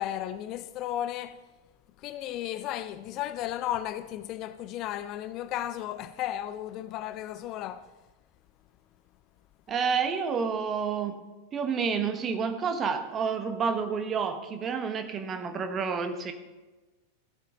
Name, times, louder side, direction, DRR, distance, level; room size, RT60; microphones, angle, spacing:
voice 1, 0.0-1.4 2.0-7.9, left 12 dB, 40° left, 0.4 m, -34 dB
voice 2, 9.7-11.2 11.5-16.3, right 6 dB, 25° right, 1.1 m, -29 dB
15.5 x 8.2 x 3.8 m
figure-of-eight pair, 90°, 0 cm